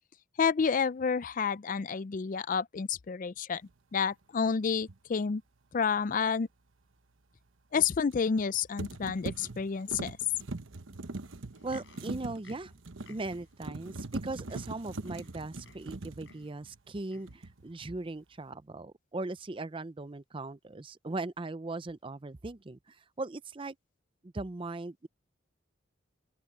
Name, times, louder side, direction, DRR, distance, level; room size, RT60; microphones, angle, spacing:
voice 1, 0.4-3.6 3.9-5.4 5.7-6.5 7.7-10.2, left 6 dB, 40° left, 0.4 m, -29 dB
sound 1, 4.8-5.0 8.1-8.5 8.8-17.0 17.3-17.7, right 2 dB, 75° right, 1.1 m, -41 dB
Livestock farm animals working animals, 11.4-13.6 14.2-14.3 14.5-15.9 16.2-16.6 17.1-17.4 18.1-18.2, left 3 dB, 60° left, 6.7 m, -57 dB
voice 2, 11.6-12.7 13.1-23.8 24.2-25.1, right 2 dB, 25° right, 0.5 m, -39 dB
open air
head